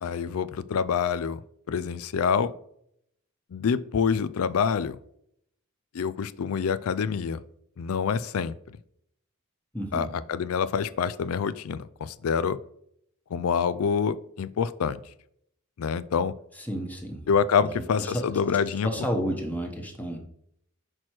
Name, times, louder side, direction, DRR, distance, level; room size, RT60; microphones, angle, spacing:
voice 1, 0.0-1.4 1.7-2.5 3.5-5.0 5.9-7.4 7.8-8.5 9.9-12.6 13.3-15.0 15.8-16.3 17.3-18.9, left 6 dB, 85° left, 16 dB, 0.4 m, -26 dB
voice 2, 9.7-10.1 16.6-17.2 18.0-18.2 18.8-20.2, equal, 5° left, 2 dB, 1.0 m, -31 dB
6.2 x 4.4 x 4.6 m, 0.70 s
head